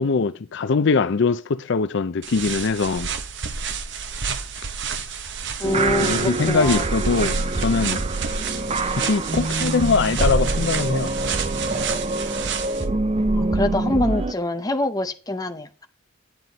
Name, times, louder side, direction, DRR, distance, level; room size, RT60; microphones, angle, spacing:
voice 1, 0.0-3.1 6.0-8.0 9.0-11.1, left 4 dB, 60° left, 0.5 m, -22 dB
sound 1, 2.2-12.8, right 6 dB, 60° right, 0.9 m, -30 dB
voice 2, 5.6-6.8 13.3-15.9, left 1 dB, 20° left, 0.7 m, -25 dB
sound 2, 5.6-14.3, right 2 dB, 30° right, 0.5 m, -25 dB
9.3 x 9.1 x 4.0 m
head